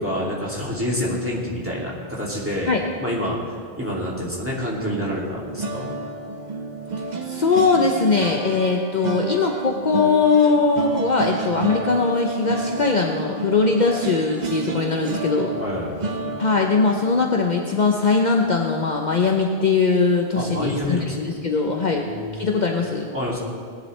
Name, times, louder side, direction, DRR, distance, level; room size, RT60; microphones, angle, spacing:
voice 1, 0.0-5.9 15.6-15.9 20.3-21.3 21.9-22.3 23.1-23.4, left 1 dB, 10° right, -5 dB, 2.5 m, -27 dB
sound 1, 4.7-19.9 20.3-20.5 20.8-21.0, right 3 dB, 45° right, 1.0 m, -31 dB
voice 2, 7.3-15.5 16.4-22.1 22.3-23.1, left 4 dB, 50° left, 1 dB, 0.9 m, -20 dB
19.0 x 10.5 x 3.2 m, 2.1 s
omnidirectional pair, 1.1 m